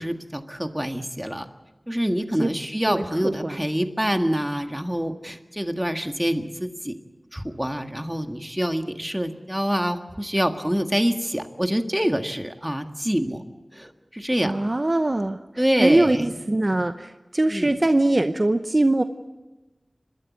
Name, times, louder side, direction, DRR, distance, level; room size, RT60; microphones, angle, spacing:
voice 1, 0.0-1.5 1.9-6.9 7.3-13.4 13.7-14.7 15.6-16.4 17.5-17.7, equal, 10° right, 6 dB, 1.7 m, -26 dB
voice 2, 2.9-3.6 14.4-15.4 15.8-19.0, right 2 dB, 40° right, 8 dB, 0.8 m, -22 dB
29.0 x 13.0 x 9.5 m, 1.1 s
wide cardioid pair, 65°, 0 cm